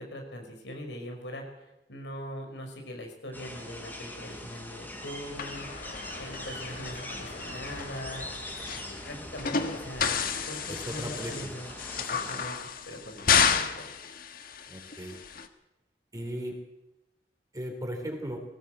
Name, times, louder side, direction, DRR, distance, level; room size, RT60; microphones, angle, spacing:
voice 1, 0.0-1.4 1.9-8.2 8.6-10.2 10.5-12.6 12.9-13.9, equal, 90° left, 3 dB, 5.7 m, -41 dB
sound 1, 3.3-12.5, left 1 dB, 10° left, 4.6 m, -42 dB
sound 2, 5.4-15.5, left 6 dB, 55° left, 1.5 m, -32 dB
voice 2, 10.7-11.5 14.7-15.2 16.1-16.6 17.5-18.4, equal, 20° right, 3 dB, 4.2 m, -37 dB
20.0 x 18.0 x 8.0 m, 0.92 s
head